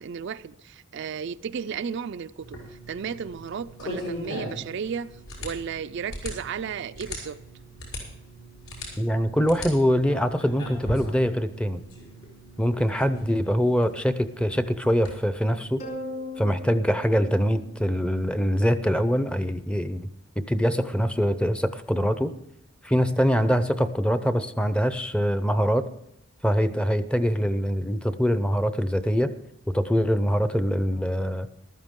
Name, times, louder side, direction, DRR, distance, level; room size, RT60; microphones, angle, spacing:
voice 1, 0.0-5.1 5.4-7.4, right 7 dB, 60° right, 0.4 m, -34 dB
sound 1, 2.4-15.2, equal, 75° left, 5.3 m, -39 dB
voice 2, 9.0-11.8 12.6-15.8 16.4-20.1 20.4-22.3 22.8-25.9 26.4-29.3 29.7-31.5, equal, 5° left, 0.6 m, -24 dB
sound 2, 15.8-18.4, left 1 dB, 50° left, 3.8 m, -38 dB
14.5 x 12.5 x 3.7 m
head